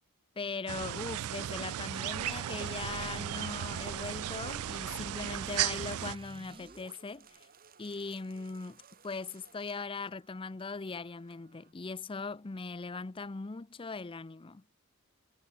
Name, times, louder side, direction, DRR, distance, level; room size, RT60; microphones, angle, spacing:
voice 1, 0.4-7.5 7.8-14.6, left 4 dB, 25° left, 0.5 m, -40 dB
sound 1, 0.7-6.2, right 12 dB, 75° right, 0.3 m, -36 dB
sound 2, 1.9-7.0, right 3 dB, 25° right, 1.1 m, -48 dB
sound 3, 5.4-11.7, right 7 dB, 40° right, 5.1 m, -60 dB
head